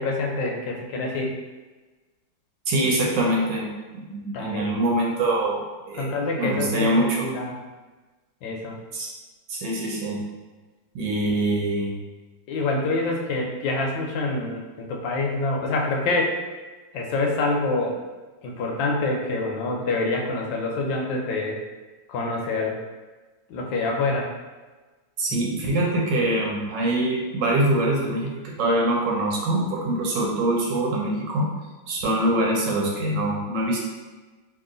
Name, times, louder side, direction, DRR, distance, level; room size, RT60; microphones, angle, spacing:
voice 1, 0.0-1.3 4.3-4.9 6.0-7.6 8.4-8.8 12.5-16.3 16.9-17.9 18.4-21.6 22.1-22.8 23.5-24.3 25.7-25.8, left 2 dB, 75° left, 0 dB, 1.2 m, -26 dB
voice 2, 2.7-3.7 3.9-7.3 8.9-9.1 9.5-10.2 10.9-11.9 25.2-31.5 31.9-33.8, right 1 dB, 70° right, -2 dB, 1.3 m, -24 dB
3.0 x 2.8 x 3.7 m, 1.3 s
omnidirectional pair, 2.1 m